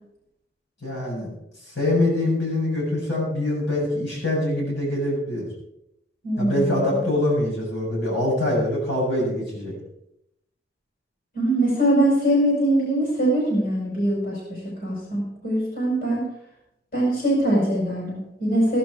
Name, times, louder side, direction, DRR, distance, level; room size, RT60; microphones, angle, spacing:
voice 1, 0.8-1.3 1.8-5.5 6.4-9.7, left 1 dB, 90° left, -4 dB, 7.0 m, -24 dB
voice 2, 6.2-7.1 11.3-16.3 16.9-18.8, right 1 dB, 55° left, -4 dB, 5.2 m, -22 dB
14.5 x 11.5 x 4.7 m, 0.81 s
head